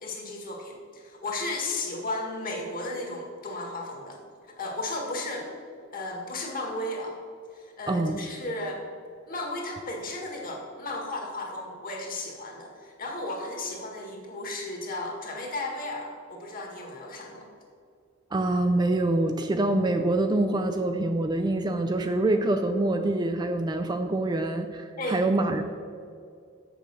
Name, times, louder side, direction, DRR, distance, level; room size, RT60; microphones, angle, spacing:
voice 1, 0.0-4.2 4.6-5.5 5.9-7.2 7.5-8.9 9.3-17.5 25.0-25.2, left 2 dB, 45° left, 1 dB, 1.7 m, -34 dB
voice 2, 7.9-8.2 18.3-25.7, right 2 dB, 20° right, 6 dB, 0.4 m, -25 dB
7.1 x 6.7 x 6.2 m, 2.3 s
head